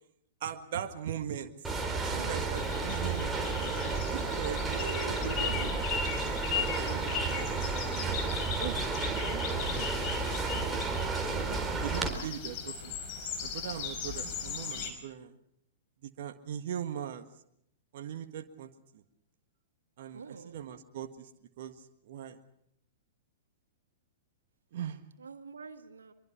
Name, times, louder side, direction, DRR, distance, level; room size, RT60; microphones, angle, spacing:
voice 1, 0.4-1.5 2.0-5.0 5.4-5.5 6.5-8.3 8.6-9.9 11.2-12.9 13.4-15.4 16.0-17.2 17.9-19.0 20.0-21.3 21.6-22.4 24.7-25.0, right 9 dB, 55° right, 7 dB, 1.6 m, -40 dB
sound 1, 1.6-12.1, right 4 dB, 10° right, 4.0 m, -32 dB
sound 2, 2.6-14.9, left 6 dB, 40° left, 4.9 m, -38 dB
voice 2, 4.7-5.8 20.1-20.6 25.2-26.1, right 4 dB, 80° right, 8 dB, 1.6 m, -43 dB
24.5 x 23.5 x 5.9 m, 0.73 s
figure-of-eight pair, 105°, 0 cm